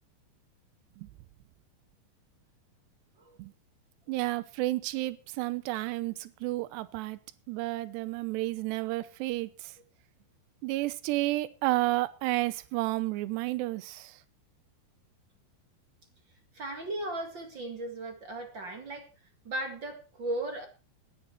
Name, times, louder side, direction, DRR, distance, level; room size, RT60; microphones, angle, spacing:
voice 1, 4.1-7.2 7.5-9.7 10.6-14.2, right 18 dB, 80° right, 2.9 m, -31 dB
voice 2, 16.5-19.1 19.4-20.7, right 1 dB, 40° right, 1.8 m, -36 dB
14.5 x 12.0 x 4.5 m
omnidirectional pair, 5.0 m